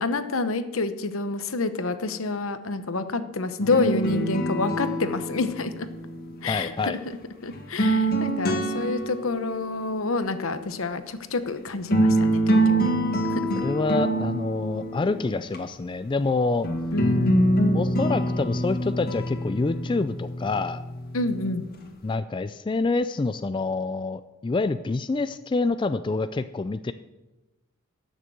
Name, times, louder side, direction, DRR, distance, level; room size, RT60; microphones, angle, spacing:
voice 1, 0.0-5.9 6.4-6.7 7.4-12.8 13.3-13.5 16.9-17.5 21.1-21.7, left 3 dB, 75° left, 10 dB, 1.0 m, -28 dB
sound 1, 3.6-6.9 7.5-9.7 11.5-11.6 11.9-15.6 16.6-21.7, right 1 dB, 45° left, 1.7 m, -25 dB
voice 2, 6.4-7.0 13.6-16.7 17.7-20.8 22.0-26.9, left 3 dB, 25° left, 11 dB, 0.3 m, -27 dB
12.0 x 6.7 x 7.8 m, 1.0 s
head